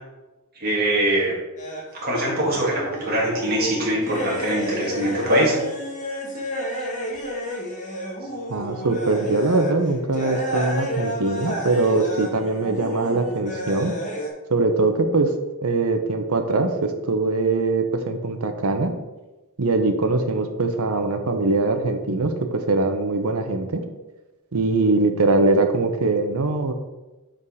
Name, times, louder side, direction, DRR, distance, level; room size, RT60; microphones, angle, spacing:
voice 1, 0.6-1.3 1.9-5.6, right 1 dB, 45° right, -4 dB, 2.0 m, -22 dB
sound 1, 1.6-1.8 2.2-9.7 10.1-14.3, equal, 35° left, 1.2 m, -31 dB
voice 2, 8.5-13.9 14.5-15.3 15.6-18.9 19.6-23.8 24.5-26.7, right 3 dB, 70° right, 6 dB, 0.8 m, -22 dB
5.1 x 4.9 x 5.4 m, 1.1 s
head